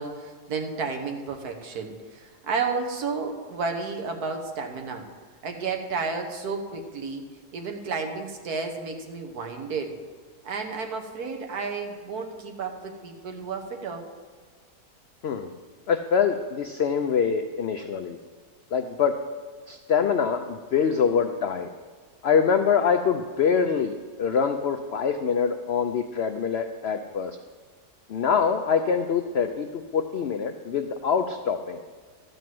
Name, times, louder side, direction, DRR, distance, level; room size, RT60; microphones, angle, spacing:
voice 1, 0.0-5.1 5.4-7.3 7.5-10.0 10.4-14.0, right 4 dB, 70° right, 4 dB, 1.7 m, -32 dB
voice 2, 15.9-18.2 18.7-19.1 19.7-21.7 22.2-27.4 28.1-29.7 29.9-31.8, left 6 dB, 70° left, 7 dB, 0.6 m, -24 dB
13.0 x 5.3 x 7.6 m, 1.5 s
omnidirectional pair, 1.7 m